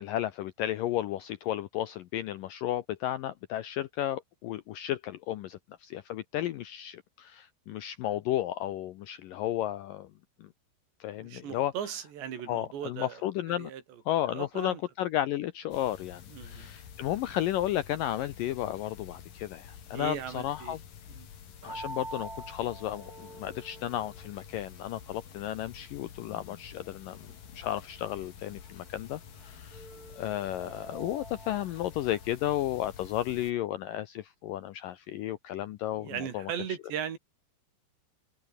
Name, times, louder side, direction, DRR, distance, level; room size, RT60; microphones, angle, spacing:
voice 1, 0.0-10.1 10.4-10.5 11.0-11.7 12.5-13.7 14.1-20.8 21.6-29.9 30.2-36.5, left 13 dB, 75° left, 2.1 m, -33 dB
voice 2, 11.2-13.2 13.6-13.8 14.3-14.8 16.3-16.7 19.9-20.8 21.1-21.3 36.0-37.2, right 9 dB, 90° right, 5.2 m, -37 dB
sound 1, 15.7-33.5, left 8 dB, 55° left, 4.1 m, -49 dB
sound 2, 21.6-33.5, right 2 dB, 20° right, 6.8 m, -48 dB
omnidirectional pair, 4.9 m